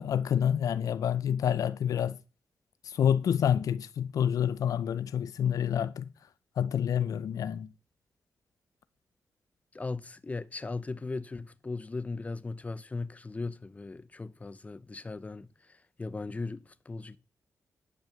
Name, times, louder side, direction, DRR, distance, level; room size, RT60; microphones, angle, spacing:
voice 1, 0.0-2.2 2.8-6.1 6.6-7.7, left 9 dB, 80° left, 0.5 m, -28 dB
voice 2, 9.7-17.2, left 3 dB, 25° left, 0.7 m, -38 dB
10.5 x 6.1 x 6.6 m
cardioid pair, 100°, 6 cm